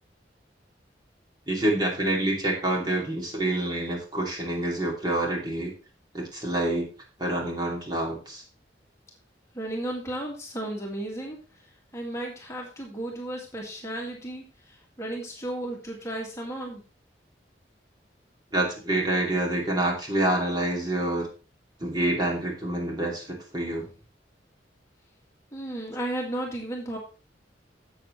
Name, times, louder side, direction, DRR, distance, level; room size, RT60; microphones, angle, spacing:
voice 1, 1.5-5.7 6.1-6.9 7.2-8.4 18.5-21.3 21.8-23.8, right 1 dB, 25° right, -2 dB, 2.7 m, -27 dB
voice 2, 9.5-11.4 11.9-16.8 25.5-27.0, right 1 dB, 15° left, -2 dB, 2.1 m, -34 dB
13.0 x 8.0 x 3.2 m, 0.35 s
head